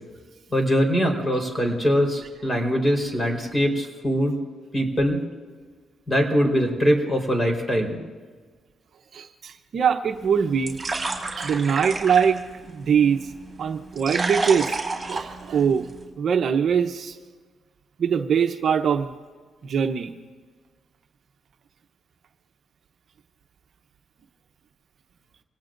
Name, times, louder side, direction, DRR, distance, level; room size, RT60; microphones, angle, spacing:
voice 1, 0.5-4.4 4.7-5.2 6.1-8.0, equal, 20° left, 2 dB, 4.3 m, -22 dB
voice 2, 9.1-10.8 11.4-13.2 13.6-14.8 15.1-15.9 16.2-17.1 18.0-19.1 19.6-20.1, right 7 dB, 55° right, 6 dB, 0.9 m, -22 dB
sound 1, 10.1-16.1, right 3 dB, 20° right, 3.8 m, -31 dB
26.5 x 18.0 x 2.6 m, 1.5 s
cardioid pair, 90°, 0 cm